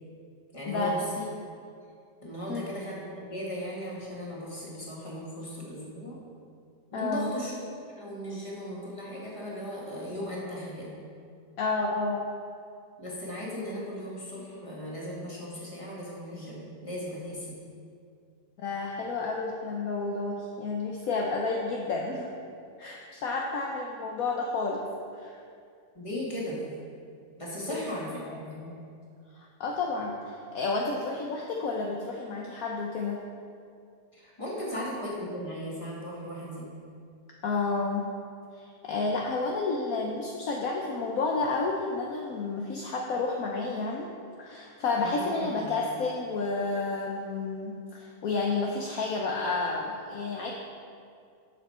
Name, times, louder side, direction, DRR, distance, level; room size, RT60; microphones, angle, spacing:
voice 1, 0.5-1.3 2.2-6.2 6.9-7.6 8.0-11.0 13.0-17.6 25.9-26.6 27.4-28.7 34.1-36.7 44.9-45.8, equal, 20° left, -5 dB, 2.1 m, -37 dB
voice 2, 6.9-7.3 11.6-12.2 18.6-22.3 22.8-24.8 25.1-25.3 27.7-27.8 28.3-28.4 29.3-33.2 37.4-38.1 38.5-44.1 44.4-50.5, left 3 dB, 60° left, -1 dB, 1.1 m, -30 dB
10.5 x 6.9 x 4.3 m, 2.3 s
omnidirectional pair, 1.8 m